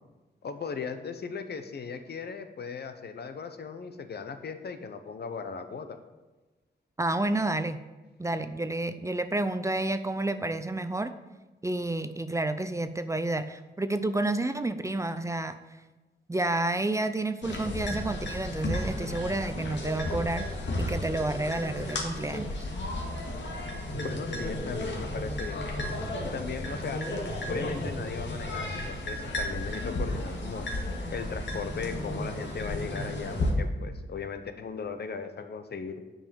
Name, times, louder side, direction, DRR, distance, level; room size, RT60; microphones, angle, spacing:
voice 1, 0.4-6.0 24.0-25.7 26.2-27.0 27.5-30.7 31.1-36.0, left 5 dB, 65° left, 8 dB, 1.0 m, -37 dB
voice 2, 7.0-7.8 8.2-11.1 11.6-15.6 16.3-20.5 20.8-22.7, right 2 dB, 15° right, 10 dB, 0.5 m, -30 dB
sound 1, 17.4-33.5, left 1 dB, 85° left, 2.0 m, -33 dB
10.0 x 5.6 x 7.0 m, 1.2 s
wide cardioid pair, 120°, 18 cm